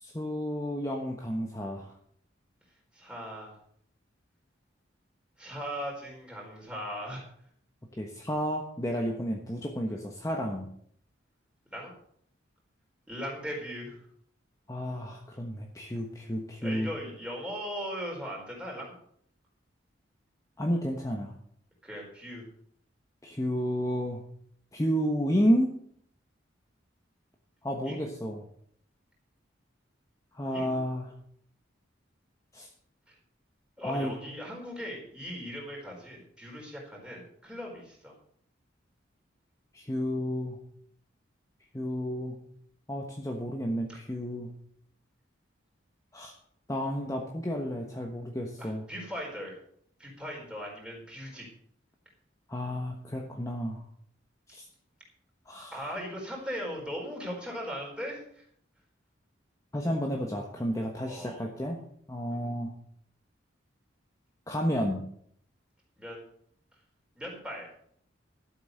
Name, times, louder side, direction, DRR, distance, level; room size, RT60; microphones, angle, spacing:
voice 1, 0.0-1.9 8.0-10.7 14.7-16.9 20.6-21.3 23.2-24.2 24.7-25.7 27.6-28.4 30.3-31.1 32.5-32.7 33.8-34.1 39.7-40.6 41.7-42.4 42.9-44.5 46.1-46.3 46.7-48.8 52.5-53.8 54.5-54.6 55.5-55.8 59.7-61.8 62.1-62.7 64.5-65.0, equal, 15° left, 1 dB, 1.2 m, -31 dB
voice 2, 2.9-3.6 5.4-7.3 11.7-11.9 13.1-14.1 16.6-19.0 21.8-22.5 27.8-28.1 30.5-30.8 33.1-33.2 33.8-38.1 43.9-44.0 48.6-49.6 50.0-51.5 55.7-58.5 61.1-61.4 62.3-62.5 66.0-66.2 67.2-67.7, equal, 5° right, -2 dB, 4.5 m, -39 dB
13.0 x 7.9 x 6.6 m, 0.65 s
head